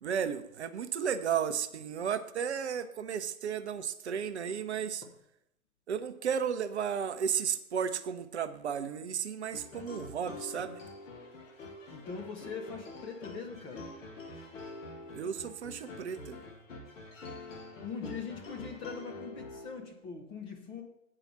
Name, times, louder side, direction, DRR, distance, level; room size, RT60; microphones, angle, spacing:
voice 1, 0.0-5.0 5.9-10.8 15.1-16.4, right 7 dB, 50° right, 12 dB, 0.7 m, -34 dB
sound 1, 9.5-20.0, left 2 dB, 60° left, 1.7 m, -46 dB
voice 2, 11.9-13.9 17.8-20.8, left 5 dB, 10° left, 1 dB, 0.6 m, -42 dB
8.5 x 4.9 x 6.5 m, 0.79 s
figure-of-eight pair, 120°, 43 cm